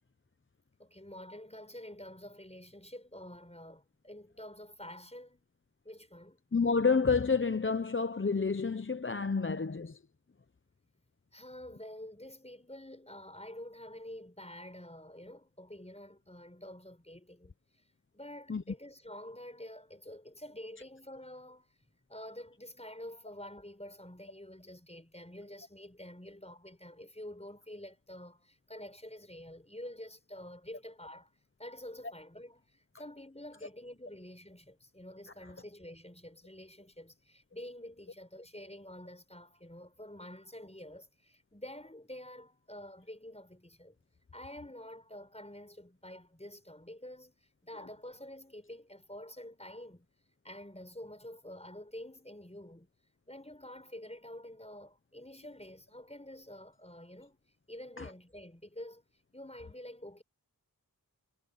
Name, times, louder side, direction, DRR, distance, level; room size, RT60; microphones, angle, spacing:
voice 1, 0.8-5.5 5.8-6.4 11.3-17.5 18.1-21.7 22.1-31.3 31.6-43.9 44.3-50.1 50.4-52.9 53.3-57.4 57.7-59.0 59.3-60.2, left 1 dB, 15° left, 5.1 m, -48 dB
voice 2, 6.5-10.0 18.5-18.6 58.0-58.1, left 4 dB, 35° left, 0.8 m, -29 dB
wide cardioid pair, 55°, 36 cm